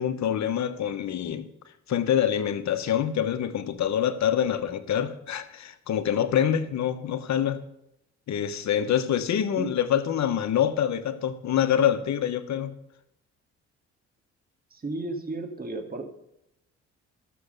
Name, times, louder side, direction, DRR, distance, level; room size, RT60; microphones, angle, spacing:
voice 1, 0.0-1.5 1.9-7.6 8.3-12.7, left 9 dB, 65° left, 10 dB, 1.2 m, -26 dB
voice 2, 14.7-16.1, right 2 dB, 30° right, 5 dB, 2.4 m, -33 dB
14.0 x 6.8 x 6.8 m, 0.81 s
cardioid pair, 90°, 30 cm